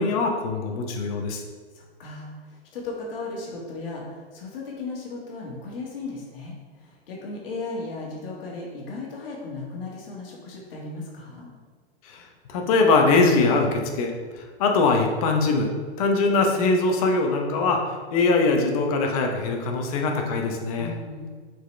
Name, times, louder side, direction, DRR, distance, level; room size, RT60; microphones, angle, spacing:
voice 1, 0.0-1.4 12.0-12.2 12.5-15.7 16.0-20.9, left 3 dB, 35° left, 3 dB, 0.8 m, -22 dB
voice 2, 1.7-11.5 20.8-21.3, left 3 dB, 60° left, -3 dB, 1.9 m, -36 dB
6.3 x 5.0 x 3.3 m, 1.5 s
hypercardioid pair, 160°, 32 cm